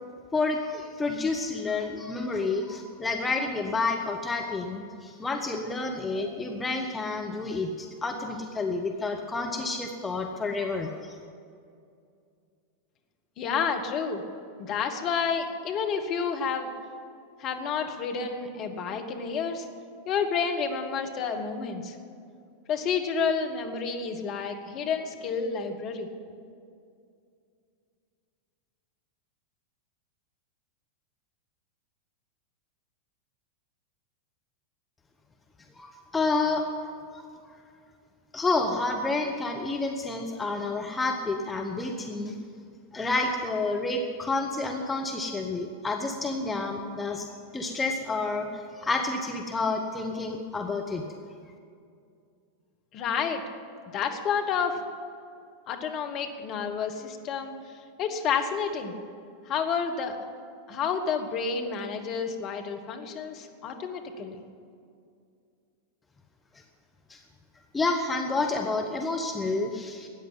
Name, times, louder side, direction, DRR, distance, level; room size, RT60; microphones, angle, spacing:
voice 1, 0.3-11.1 35.8-36.7 37.1-37.3 38.3-42.4 42.9-47.3 47.5-48.5 48.7-51.0 67.1-67.2 67.7-70.1, left 3 dB, 10° left, 2 dB, 1.0 m, -29 dB
voice 2, 13.4-14.2 14.6-16.7 17.4-19.7 20.0-21.9 22.7-26.1 52.9-53.4 53.9-54.8 55.7-57.5 58.0-58.9 59.5-60.2 60.7-64.4, left 6 dB, 35° left, 4 dB, 1.4 m, -30 dB
13.5 x 9.3 x 9.0 m, 2.4 s
figure-of-eight pair, 90°, 0 cm